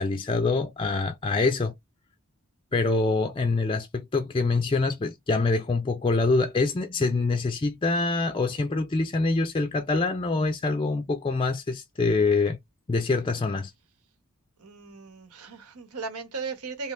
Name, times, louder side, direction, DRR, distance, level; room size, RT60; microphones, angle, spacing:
voice 1, 0.0-1.7 2.7-12.6 12.9-13.7, left 3 dB, 25° left, 0.4 m, -25 dB
voice 2, 14.6-16.9, right 4 dB, 85° right, 1.3 m, -37 dB
3.2 x 2.9 x 3.1 m
head